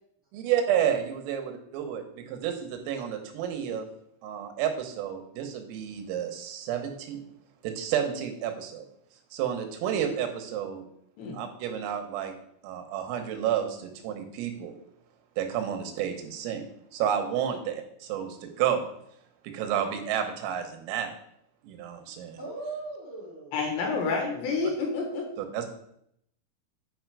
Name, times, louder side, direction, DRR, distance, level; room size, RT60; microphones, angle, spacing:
voice 1, 0.3-3.9 4.2-7.2 7.6-8.8 9.3-10.9 11.3-12.3 12.6-14.8 15.4-16.6 16.9-18.8 19.5-21.1 21.6-22.4 25.4-25.7, right 9 dB, 85° right, 6 dB, 3.7 m, -30 dB
voice 2, 22.4-23.6, right 3 dB, 45° left, -7 dB, 0.7 m, -39 dB
voice 3, 23.5-25.3, left 4 dB, 75° left, 1 dB, 3.1 m, -29 dB
9.4 x 4.1 x 4.6 m, 0.72 s
omnidirectional pair, 5.8 m